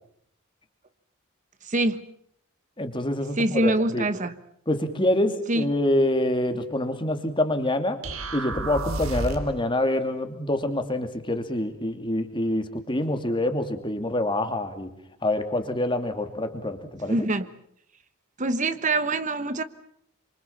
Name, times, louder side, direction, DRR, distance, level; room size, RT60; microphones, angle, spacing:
voice 1, 1.6-2.0 3.4-4.3 5.5-5.7 17.1-17.5 18.4-19.6, right 2 dB, 35° right, 12 dB, 1.2 m, -24 dB
voice 2, 2.8-4.1 4.7-8.0 8.3-14.9 15.2-17.3, left 1 dB, 25° left, 8 dB, 2.7 m, -26 dB
sound 1, 8.0-9.6, right 2 dB, 75° right, 3.7 m, -31 dB
28.0 x 25.5 x 7.2 m, 0.68 s
head